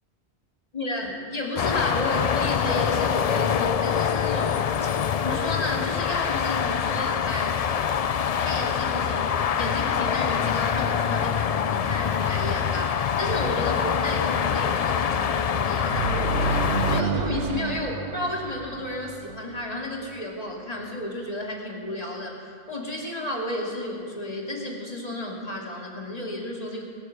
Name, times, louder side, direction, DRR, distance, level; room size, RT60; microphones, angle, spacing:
voice 1, 0.7-4.9 5.2-7.6 8.4-22.4 22.7-26.8, left 1 dB, 35° left, -1 dB, 2.5 m, -32 dB
sound 1, 1.6-17.0, left 8 dB, 60° left, 0.4 m, -25 dB
sound 2, 15.9-19.6, right 4 dB, 80° right, 1.2 m, -29 dB
21.5 x 9.8 x 6.6 m, 2.2 s
omnidirectional pair, 1.2 m